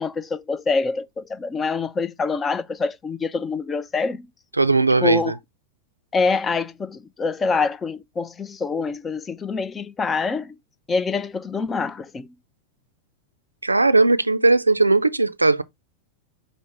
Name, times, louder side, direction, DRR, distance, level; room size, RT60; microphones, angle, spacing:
voice 1, 0.0-4.3 5.0-5.3 6.1-10.5 10.9-12.3, left 4 dB, 20° left, 0.4 m, -25 dB
voice 2, 4.5-5.4 13.6-15.6, right 3 dB, 85° right, 0.3 m, -18 dB
5.1 x 2.1 x 4.6 m
figure-of-eight pair, 90°, 0 cm